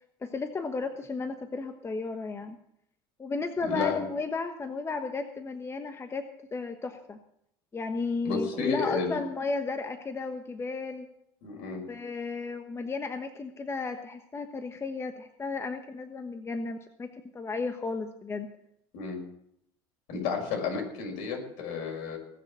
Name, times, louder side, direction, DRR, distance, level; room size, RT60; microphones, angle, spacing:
voice 1, 0.2-2.6 3.2-7.2 7.7-11.1 11.9-18.5, left 4 dB, 25° left, 7 dB, 1.2 m, -34 dB
voice 2, 3.6-4.0 8.2-9.2 11.4-11.8 18.9-19.2 20.1-22.2, left 5 dB, 70° left, 1 dB, 6.0 m, -31 dB
19.5 x 6.7 x 7.4 m, 0.75 s
supercardioid pair, 95°, 11 cm